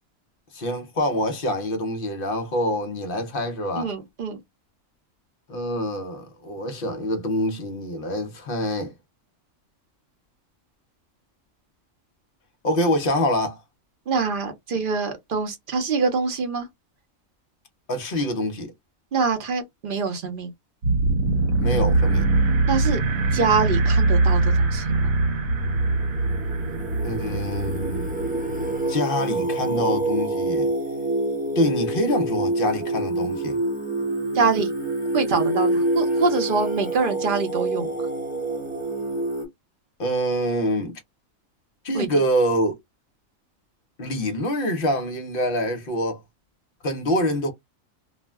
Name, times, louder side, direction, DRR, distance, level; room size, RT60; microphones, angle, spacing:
voice 1, 0.5-3.9 5.5-8.9 12.6-13.6 17.9-18.7 21.6-22.3 27.0-28.1 28.9-30.7 31.6-33.6 40.0-41.0 41.8-42.8 44.0-46.2 46.8-47.5, equal, 50° left, 0.7 m, -25 dB
voice 2, 3.8-4.4 14.1-16.7 19.1-20.5 22.7-23.0 23.3-25.1 34.3-34.7 35.1-37.9 41.9-42.1, right 4 dB, 50° right, 0.7 m, -25 dB
sound 1, 20.8-28.9, right 3 dB, 80° right, 1.0 m, -22 dB
Singing, 25.6-39.4, right 2 dB, 10° right, 0.6 m, -27 dB
2.4 x 2.1 x 3.4 m
omnidirectional pair, 1.4 m